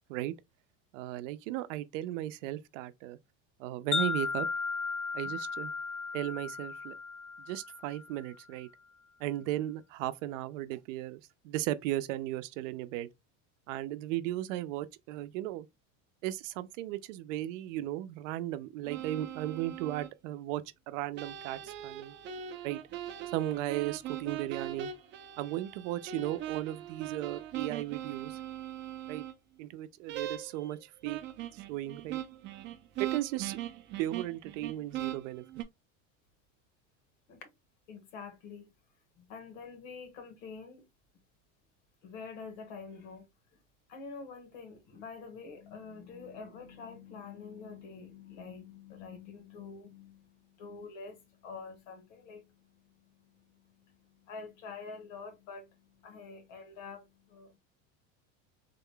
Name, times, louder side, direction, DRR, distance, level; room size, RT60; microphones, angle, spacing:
voice 1, 0.9-3.2 3.6-4.5 5.1-5.7 6.1-6.9 7.4-8.7 9.2-13.1 13.7-15.7 16.2-22.2 22.6-22.8 23.3-24.9 25.4-28.4 29.1-29.2 29.6-31.2 31.5-32.2 33.0-33.6 34.0-35.4, right 14 dB, 80° right, 0.6 m, -36 dB
Wind chime, 3.9-8.2, left 4 dB, 35° left, 0.5 m, -35 dB
sound 1, 18.8-20.1 21.2-29.3 30.1-30.7 31.0-35.6, right 11 dB, 30° right, 0.4 m, -40 dB
voice 2, 37.9-38.7 39.2-40.9 42.0-43.3 43.9-57.6, left 5 dB, 80° left, 1.6 m, -47 dB
3.7 x 2.2 x 3.6 m
supercardioid pair, 150°, 37 cm